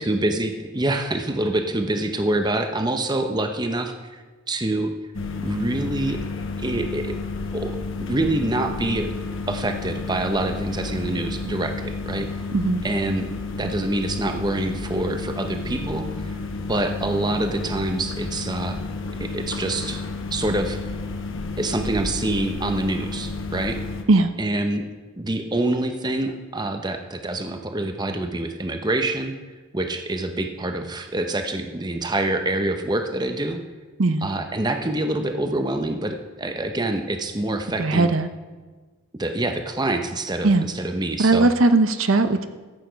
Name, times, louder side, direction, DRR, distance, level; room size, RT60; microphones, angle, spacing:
voice 1, 0.0-4.9 5.4-6.2 6.6-7.2 7.5-7.8 8.1-9.1 9.5-12.3 12.8-13.3 13.6-16.3 16.7-18.8 19.2-20.0 20.3-20.8 21.6-23.8 24.4-24.8 25.2-29.3 29.7-33.6 34.2-38.1 39.2-41.5, right 2 dB, 20° right, 6 dB, 0.7 m, -26 dB
sound 1, 5.1-24.0, left 3 dB, 60° left, 1.1 m, -31 dB
voice 2, 37.8-38.3 40.4-40.7 41.2-42.5, right 2 dB, 65° right, 9 dB, 0.7 m, -18 dB
14.5 x 8.3 x 5.2 m, 1.3 s
head